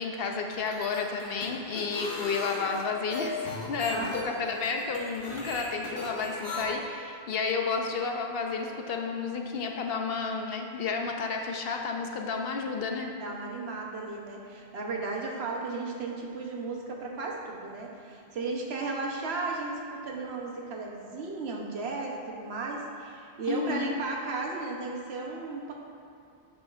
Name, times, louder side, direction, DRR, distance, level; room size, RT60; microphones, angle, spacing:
voice 1, 0.0-13.1 23.5-24.0, left 5 dB, 70° left, 3 dB, 0.8 m, -31 dB
sound 1, 0.5-6.6, left 2 dB, 50° left, 1.2 m, -37 dB
voice 2, 13.2-25.7, right 3 dB, 80° right, 0 dB, 1.1 m, -35 dB
10.0 x 5.2 x 2.4 m, 2.6 s
omnidirectional pair, 1.1 m